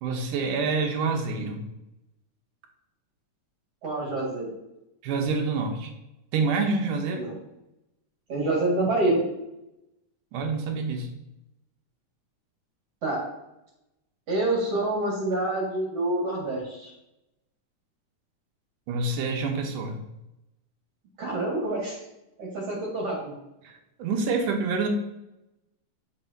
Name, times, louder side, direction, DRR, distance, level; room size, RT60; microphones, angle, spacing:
voice 1, 0.0-1.7 5.0-5.9 6.3-7.2 10.3-11.1 18.9-20.0 23.6-23.7 24.0-24.9, right 4 dB, 80° right, 3 dB, 2.5 m, -27 dB
voice 2, 3.8-4.5 7.1-7.3 8.3-9.3 13.0-13.2 14.3-16.9 21.2-22.0 22.4-23.3, right 2 dB, 50° right, -4 dB, 2.9 m, -27 dB
9.1 x 5.5 x 2.8 m, 0.91 s
omnidirectional pair, 3.7 m